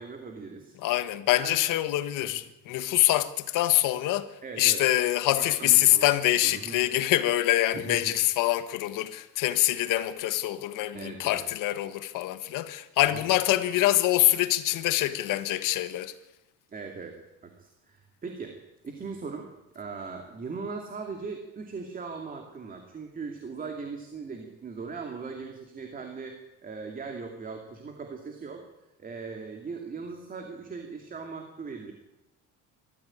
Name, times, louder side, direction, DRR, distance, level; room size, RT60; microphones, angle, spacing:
voice 1, 0.0-0.8 1.4-1.6 4.4-4.8 5.3-6.1 6.4-6.9 7.7-8.1 10.9-11.4 16.7-18.6 18.8-19.5 19.7-28.7 29.0-31.9, right 4 dB, 25° right, 2.5 m, -39 dB
voice 2, 0.8-4.3 4.6-16.1, left 15 dB, 70° left, 1.6 m, -25 dB
23.0 x 14.0 x 8.8 m
cardioid pair, 150°, 33 cm